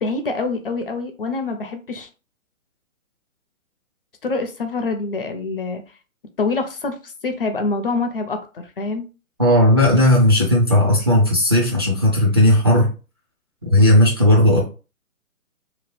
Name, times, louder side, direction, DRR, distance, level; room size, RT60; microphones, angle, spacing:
voice 1, 0.0-2.1 4.2-5.8 6.4-9.1, left 3 dB, 40° left, 0.5 m, -25 dB
voice 2, 9.4-12.9 13.7-14.6, left 1 dB, 20° right, 0.4 m, -15 dB
2.9 x 2.4 x 3.0 m
hypercardioid pair, 150°, 42 cm